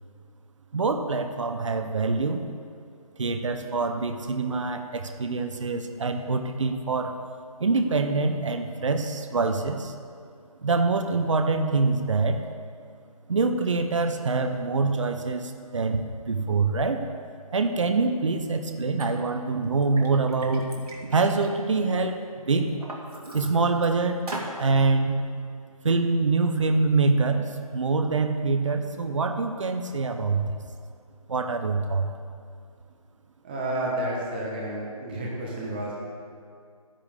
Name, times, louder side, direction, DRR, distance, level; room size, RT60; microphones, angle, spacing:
voice 1, 0.7-2.4 3.2-7.2 7.6-9.9 10.6-12.5 13.3-17.0 17.5-20.7 21.1-22.7 23.3-25.2 25.8-30.6 31.3-32.1, right 3 dB, 55° right, 6 dB, 0.8 m, -25 dB
Liquid, 19.0-19.1 19.6-22.0 22.5-23.9 24.3-24.6, right 2 dB, 80° right, 2.4 m, -39 dB
voice 2, 33.4-35.9, right 1 dB, 15° right, -4 dB, 1.2 m, -30 dB
12.5 x 10.0 x 3.6 m, 2.3 s
figure-of-eight pair, 170°, 19 cm